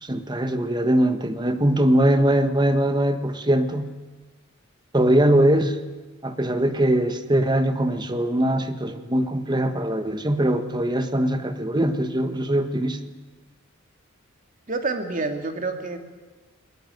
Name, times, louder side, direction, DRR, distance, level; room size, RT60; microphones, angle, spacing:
voice 1, 0.0-3.9 4.9-5.8 6.2-13.0, right 1 dB, 20° right, 9 dB, 1.4 m, -21 dB
voice 2, 14.7-16.0, right 3 dB, 40° right, 5 dB, 2.5 m, -28 dB
21.0 x 20.0 x 9.3 m, 1.3 s
head